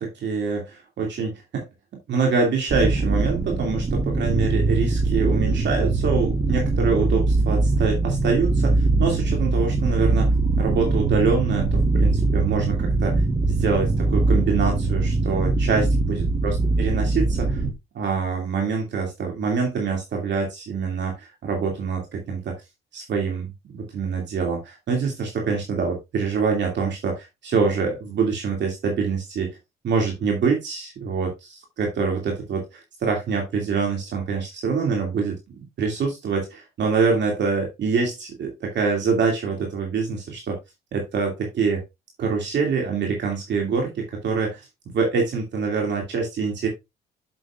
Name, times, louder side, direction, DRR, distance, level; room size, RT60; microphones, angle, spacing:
voice 1, 0.0-1.6 2.1-13.2 13.5-17.6 17.9-22.6 22.9-29.5 29.8-35.4 35.8-40.6 40.9-41.8 42.2-44.7 44.9-46.7, right 5 dB, 65° right, 1 dB, 2.4 m, -25 dB
sound 1, 2.7-17.7, right 3 dB, 30° right, 1.1 m, -22 dB
8.0 x 7.0 x 2.4 m, 0.22 s
cardioid pair, 90°, 20 cm